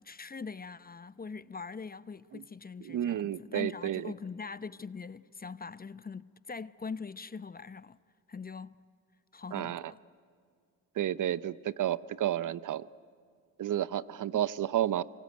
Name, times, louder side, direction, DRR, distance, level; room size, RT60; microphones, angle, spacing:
voice 1, 0.0-8.0 8.3-8.8 9.3-10.0, left 5 dB, 25° left, 0.7 m, -42 dB
voice 2, 2.8-4.1 9.5-9.9 11.0-12.9 13.6-15.0, right 11 dB, 50° right, 0.8 m, -31 dB
24.5 x 24.0 x 9.5 m
hypercardioid pair, 55°, 40 cm